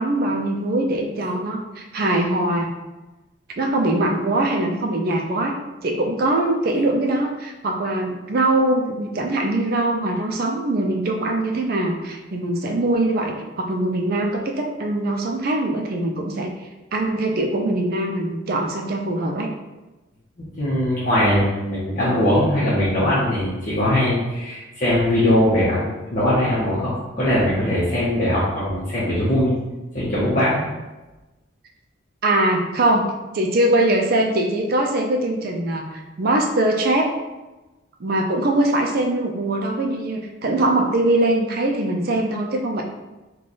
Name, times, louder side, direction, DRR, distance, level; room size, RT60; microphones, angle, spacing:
voice 1, 0.0-2.7 3.6-5.5 5.8-16.5 16.9-19.5 32.2-33.1 33.3-37.1 38.0-42.8, right 1 dB, 45° right, 2 dB, 0.4 m, -22 dB
voice 2, 20.6-29.6 29.9-30.6, left 1 dB, 40° left, -11 dB, 0.8 m, -20 dB
3.2 x 2.3 x 4.0 m, 1.1 s
head